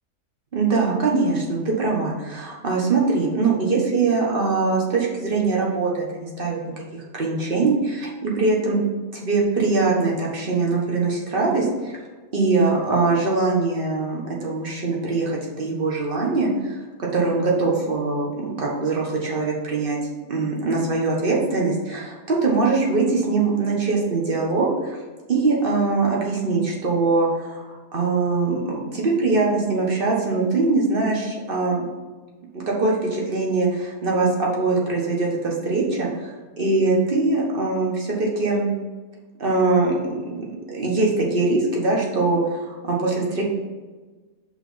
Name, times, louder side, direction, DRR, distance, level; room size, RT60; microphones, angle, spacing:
voice 1, 0.5-8.8 9.1-12.0 12.3-20.0 20.3-25.0 25.3-31.8 32.5-38.7 39.4-43.4, right 3 dB, 35° right, -2 dB, 1.3 m, -22 dB
5.6 x 4.0 x 5.6 m, 1.3 s
omnidirectional pair, 1.7 m